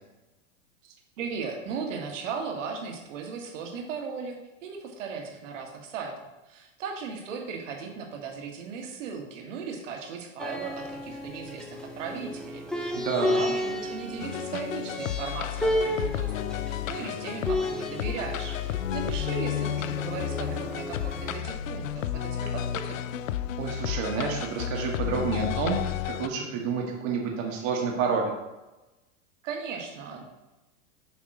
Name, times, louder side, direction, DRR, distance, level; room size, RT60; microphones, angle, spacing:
voice 1, 0.8-6.1 6.5-23.0 29.4-30.2, right 5 dB, 70° right, 2 dB, 1.7 m, -37 dB
sound 1, 10.4-21.4, left 1 dB, ahead, 0.6 m, -33 dB
voice 2, 12.9-13.4 23.6-28.3, right 5 dB, 45° right, 0 dB, 1.4 m, -29 dB
sound 2, 14.2-26.3, left 11 dB, 85° left, 0.5 m, -32 dB
7.2 x 3.6 x 6.0 m, 1.0 s
hypercardioid pair, 115°, 38 cm